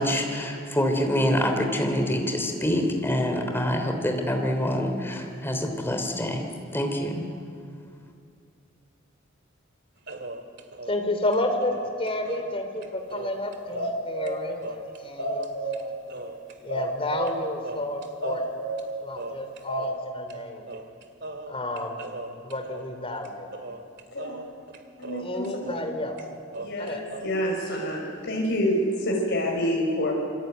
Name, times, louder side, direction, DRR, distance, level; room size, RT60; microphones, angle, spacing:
voice 1, 0.0-6.4 6.7-7.2, equal, 10° left, 4 dB, 3.2 m, -26 dB
sound 1, 10.1-14.0 14.3-14.4 14.6-15.8 16.1-17.4 17.6-20.0 20.3-20.4 20.7-25.9 26.2-27.3, right 2 dB, 60° right, 2.2 m, -40 dB
voice 2, 10.9-16.0 16.6-18.4 19.0-20.7 21.5-22.0 22.4-23.5 25.2-26.2 26.8-27.0, left 1 dB, 30° left, 5 dB, 3.4 m, -31 dB
sound 2, 13.0-13.1 13.5-14.4 14.9-15.9 16.3-16.4 16.7-17.4 17.8-17.9 18.2-18.9 19.4-19.9, right 1 dB, 85° left, 7.2 m, -31 dB
voice 3, 24.1-24.4 25.0-25.5 26.6-30.1, equal, 60° left, -1 dB, 5.7 m, -27 dB
27.0 x 23.0 x 9.3 m, 2.4 s
head